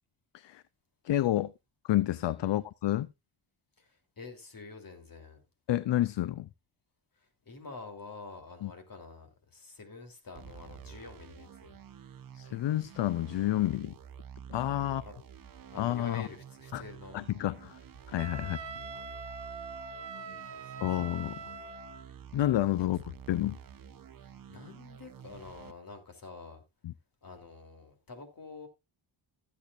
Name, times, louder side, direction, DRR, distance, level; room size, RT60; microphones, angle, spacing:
voice 1, 1.0-1.5 1.8-3.1 5.7-6.5 8.6-8.7 12.3-13.9 14.5-15.0 15.8-16.3 16.7-16.8 17.1-17.8 18.1-18.6 20.8-21.4 22.3-23.6 26.8-26.9, left 14 dB, 60° left, 0.6 m, -29 dB
voice 2, 3.8-5.4 7.4-11.8 14.8-15.2 15.7-17.2 18.4-18.6 20.3-20.7 24.2-26.6 27.2-28.7, left 4 dB, 45° left, 3.2 m, -47 dB
sound 1, 10.4-25.7, right 8 dB, 45° right, 0.8 m, -49 dB
Wind instrument woodwind instrument, 18.2-22.1, right 4 dB, 60° right, 1.4 m, -43 dB
15.5 x 8.5 x 2.5 m
cardioid pair, 95°, 49 cm